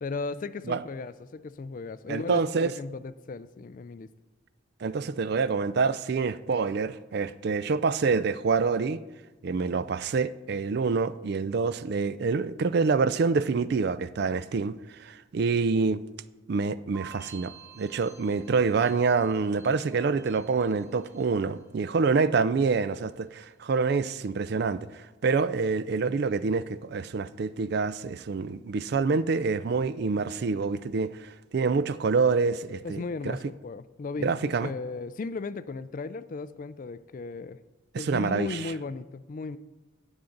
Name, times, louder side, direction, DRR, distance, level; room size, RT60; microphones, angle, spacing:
voice 1, 0.0-4.1 32.8-37.6 38.0-39.6, left 4 dB, 40° left, 0.3 m, -36 dB
voice 2, 2.1-2.7 4.8-9.0 9.4-16.0 16.5-33.4 34.2-34.7 37.9-38.6, right 4 dB, 50° right, 0.3 m, -27 dB
sound 1, 16.9-22.0 22.3-22.9, right 7 dB, 15° right, 1.5 m, -52 dB
17.0 x 7.2 x 3.9 m
head